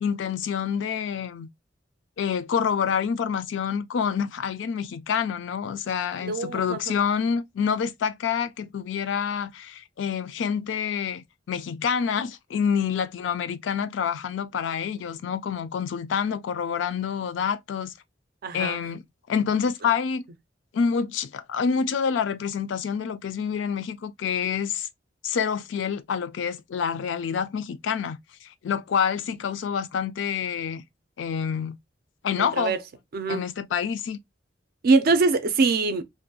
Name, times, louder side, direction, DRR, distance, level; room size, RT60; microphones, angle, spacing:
voice 1, 0.0-1.5 2.2-17.9 18.5-19.0 19.3-20.2 20.7-24.9 25.2-30.8 31.2-31.8 32.2-32.8 33.3-34.2, left 7 dB, 75° left, 0.3 m, -27 dB
voice 2, 6.2-7.0 18.4-18.8 32.4-32.8 33.1-33.5 34.8-36.0, right 3 dB, 55° right, 0.4 m, -23 dB
2.6 x 2.2 x 2.6 m
head